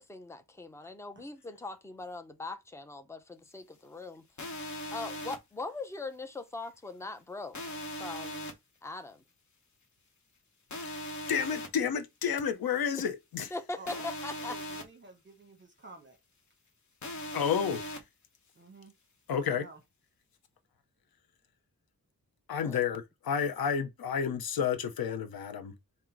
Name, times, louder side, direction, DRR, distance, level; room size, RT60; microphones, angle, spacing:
voice 1, 0.0-4.3 4.9-8.5 8.8-9.2 12.9-13.0 13.5-14.6 22.6-22.8, left 3 dB, 10° left, 0.5 m, -41 dB
voice 2, 0.8-1.2 13.8-16.2 18.5-18.9 19.3-19.8, right 2 dB, 30° right, 0.9 m, -52 dB
sound 1, 4.4-5.4 7.5-8.5 10.7-11.7 13.9-14.8 17.0-18.0, left 1 dB, 50° left, 0.9 m, -39 dB
voice 3, 11.3-13.5 17.3-17.8 19.3-19.6 22.5-25.7, left 7 dB, 75° left, 0.6 m, -30 dB
3.7 x 2.1 x 4.4 m
wide cardioid pair, 120°, 36 cm